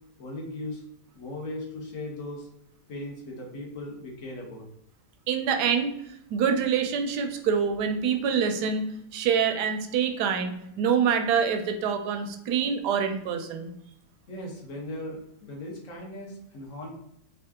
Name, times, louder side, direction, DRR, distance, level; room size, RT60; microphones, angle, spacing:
voice 1, 0.2-0.8 1.1-2.5 2.9-4.7 14.3-16.9, left 1 dB, 50° left, -1 dB, 1.3 m, -38 dB
voice 2, 5.3-5.9 6.3-8.8 9.1-13.7, right 7 dB, 75° right, 6 dB, 1.1 m, -26 dB
3.6 x 2.4 x 3.5 m, 0.77 s
omnidirectional pair, 1.9 m